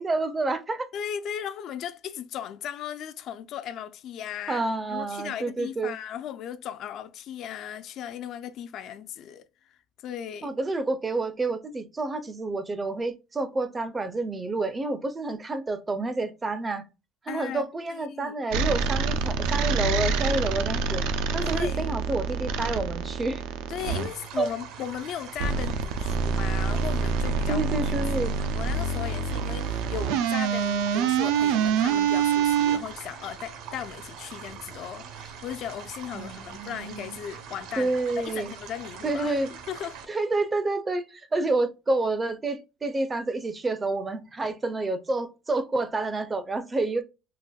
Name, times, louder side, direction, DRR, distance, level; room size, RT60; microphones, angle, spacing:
voice 1, 0.0-0.9 4.5-6.0 10.4-16.8 17.2-21.0 21.3-23.4 24.4-24.5 27.5-28.4 36.1-37.2 37.8-38.5 39.0-39.5 40.1-47.0, right 2 dB, 15° right, 0.4 m, -29 dB
voice 2, 0.9-4.6 4.9-9.4 10.0-10.5 17.3-18.3 21.4-21.9 23.7-40.0, left 9 dB, 50° left, 0.3 m, -37 dB
sound 1, 18.5-24.1 25.4-32.8, right 6 dB, 85° right, 0.4 m, -26 dB
sound 2, 23.8-40.1, right 7 dB, 65° right, 0.8 m, -43 dB
4.0 x 2.5 x 2.2 m
cardioid pair, 155°, 0 cm